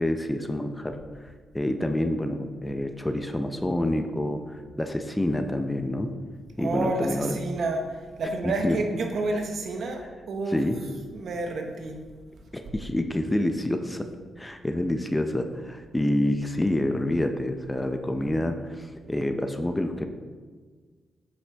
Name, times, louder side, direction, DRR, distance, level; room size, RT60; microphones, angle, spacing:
voice 1, 0.0-6.1 6.6-7.4 8.4-8.8 10.5-10.8 12.5-14.1 14.4-20.1, left 1 dB, 10° left, 6 dB, 0.5 m, -27 dB
voice 2, 6.6-12.0, right 2 dB, 65° right, 3 dB, 1.0 m, -30 dB
8.0 x 6.1 x 3.4 m, 1.5 s
cardioid pair, 95°, 0 cm